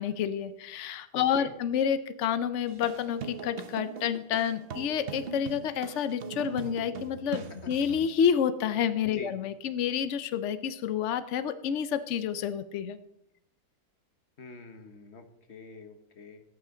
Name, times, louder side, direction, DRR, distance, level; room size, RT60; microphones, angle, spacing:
voice 1, 0.0-13.0, left 8 dB, 85° left, 13 dB, 0.6 m, -29 dB
voice 2, 1.1-1.5 9.0-9.3 14.4-16.4, left 3 dB, 40° left, 7 dB, 1.3 m, -46 dB
sound 1, 2.7-8.1, right 6 dB, 65° right, 0.5 m, -41 dB
16.5 x 8.9 x 3.8 m, 0.87 s
omnidirectional pair, 2.0 m